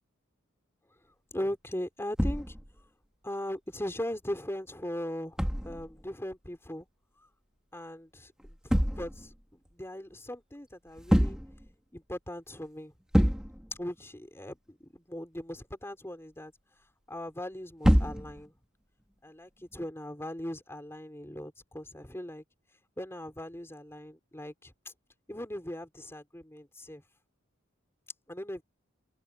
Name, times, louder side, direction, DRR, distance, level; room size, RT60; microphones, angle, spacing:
voice 1, 1.3-2.6 3.2-6.9 7.7-11.4 11.9-12.9 13.8-16.5 17.1-18.5 19.2-22.4 23.0-24.9 25.3-27.0 28.3-28.6, left 1 dB, 10° left, 4.4 m, -39 dB
sound 1, 2.2-2.8 5.4-6.0 8.4-9.3 11.0-11.7 12.1-12.2 12.6-12.7 13.1-13.8 17.8-18.5 19.6-19.8, equal, 5° right, 3.4 m, -26 dB
open air
head